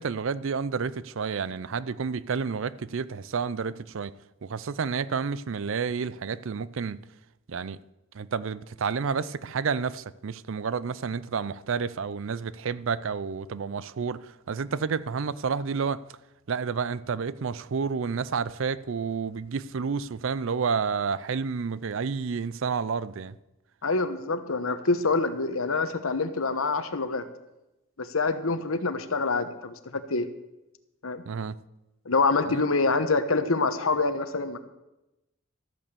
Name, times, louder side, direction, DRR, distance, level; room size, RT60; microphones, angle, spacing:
voice 1, 0.0-4.1 4.4-7.0 7.5-7.8 8.1-16.0 16.5-23.3 31.3-31.6 32.5-32.6, right 5 dB, 65° right, 0.5 m, -30 dB
voice 2, 23.8-27.2 28.0-30.3 31.0-31.2 32.0-34.6, left 3 dB, 75° left, 1.1 m, -26 dB
13.5 x 8.8 x 6.8 m
head